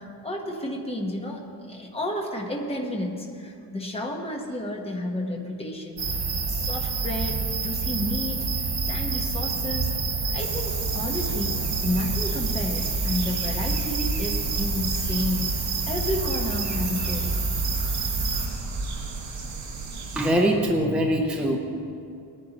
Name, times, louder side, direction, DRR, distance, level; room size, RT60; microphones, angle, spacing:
voice 1, 0.0-8.5 8.9-9.9 10.3-17.3, left 1 dB, 15° left, 0 dB, 1.1 m, -31 dB
sound 1, 6.0-18.5, right 4 dB, 60° right, 2.3 m, -27 dB
sound 2, 10.4-20.3, right 3 dB, 85° right, 2.5 m, -36 dB
voice 2, 20.2-21.6, right 1 dB, 5° right, 0 dB, 0.6 m, -22 dB
19.0 x 10.5 x 3.0 m, 2.5 s
wide cardioid pair, 175°, 42 cm